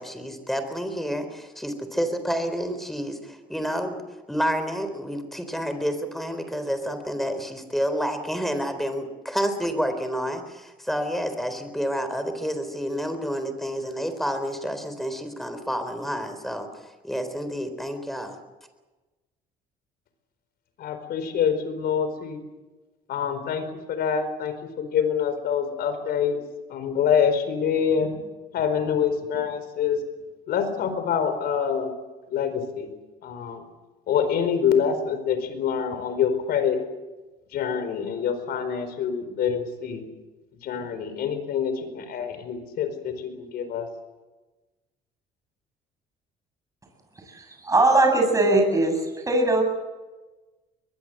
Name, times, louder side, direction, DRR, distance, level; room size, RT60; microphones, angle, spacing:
voice 1, 0.0-4.0 4.3-18.4, equal, ahead, 9 dB, 3.9 m, -29 dB
voice 2, 20.8-22.4 23.1-26.4 26.7-28.1 28.5-30.0 30.5-31.9 32.3-32.9 33.2-33.6 34.1-36.8 37.5-40.0 40.6-43.9, left 7 dB, 65° left, 9 dB, 4.7 m, -26 dB
voice 3, 47.3-49.0 49.2-49.6, right 2 dB, 20° right, 3 dB, 7.9 m, -20 dB
22.5 x 22.0 x 7.8 m, 1.2 s
cardioid pair, 110°, 17 cm